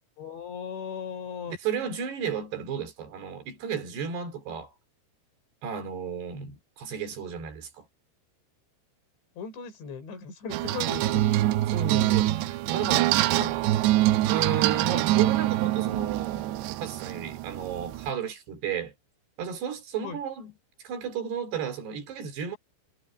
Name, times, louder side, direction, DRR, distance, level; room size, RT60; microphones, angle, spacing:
voice 1, 0.2-1.6 9.4-11.2 20.0-20.2, left 6 dB, 75° left, 6.5 m, -37 dB
voice 2, 1.5-4.7 5.6-7.9 11.7-13.6 14.3-18.9 19.4-20.5 20.8-22.6, right 7 dB, 65° right, 5.2 m, -33 dB
sound 1, 10.5-18.1, right 15 dB, 85° right, 2.6 m, -25 dB
omnidirectional pair, 5.3 m